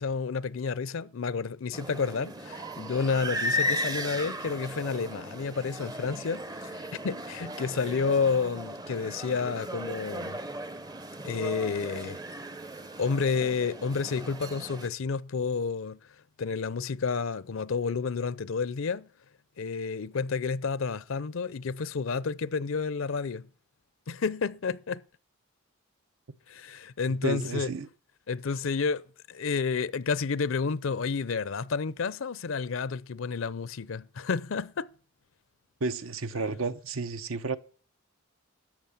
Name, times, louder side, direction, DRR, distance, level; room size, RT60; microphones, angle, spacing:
voice 1, 0.0-6.4 6.7-10.4 11.2-12.2 13.0-16.0 16.4-19.1 19.6-23.5 24.1-25.0 26.5-27.7 28.3-29.0 29.3-34.9, left 5 dB, 70° left, 0.5 m, -30 dB
sound 1, 1.7-14.9, equal, 20° right, 0.6 m, -36 dB
voice 2, 27.2-27.9 35.8-37.6, right 3 dB, 75° right, 0.9 m, -31 dB
13.5 x 8.9 x 7.2 m
head